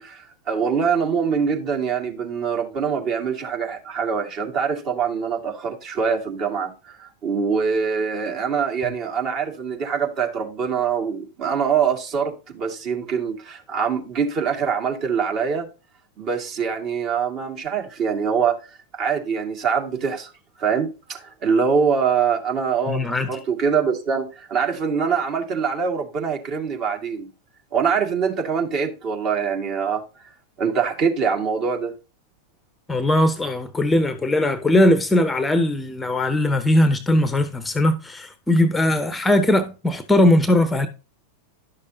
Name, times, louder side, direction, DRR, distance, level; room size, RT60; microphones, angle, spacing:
voice 1, 0.0-15.7 16.2-20.3 20.6-23.0 23.3-27.3 27.7-30.3 30.6-31.9, right 6 dB, 35° right, 2.2 m, -24 dB
voice 2, 22.9-23.3 32.9-40.9, left 1 dB, 10° left, 0.9 m, -19 dB
11.5 x 6.5 x 2.8 m
figure-of-eight pair, 90°, 0 cm